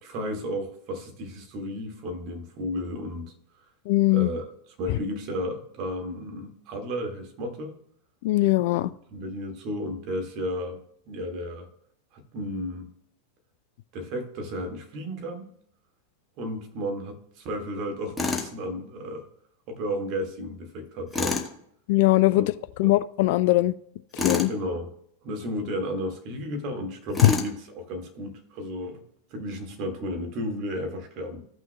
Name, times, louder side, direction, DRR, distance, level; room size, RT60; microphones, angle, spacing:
voice 1, 0.0-3.3 4.1-7.8 8.8-11.7 12.1-12.9 13.9-15.5 16.4-19.3 19.7-21.4 22.3-22.5 22.8-22.9 24.5-24.9 25.2-29.0 29.3-31.4, equal, 40° right, 1.8 m, -33 dB
voice 2, 3.9-4.3 8.2-8.9 21.9-22.4 22.8-23.7 24.2-24.5, left 18 dB, 50° left, 0.3 m, -21 dB
Tools, 18.2-18.5 21.1-21.5 24.1-24.5 27.1-27.6, left 3 dB, 10° left, 1.3 m, -27 dB
15.5 x 6.1 x 2.2 m
figure-of-eight pair, 90°, 0 cm